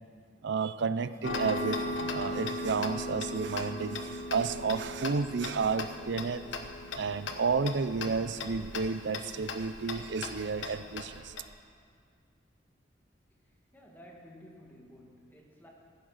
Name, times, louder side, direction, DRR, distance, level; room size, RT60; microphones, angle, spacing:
voice 1, 0.4-6.5 7.0-11.4, right 5 dB, 65° right, 14 dB, 0.5 m, -31 dB
Tick-tock, 1.2-11.5, left 2 dB, 80° left, 1.1 m, -38 dB
voice 2, 13.4-15.7, equal, 10° left, -1 dB, 1.9 m, -54 dB
15.0 x 9.4 x 6.5 m, 2.1 s
head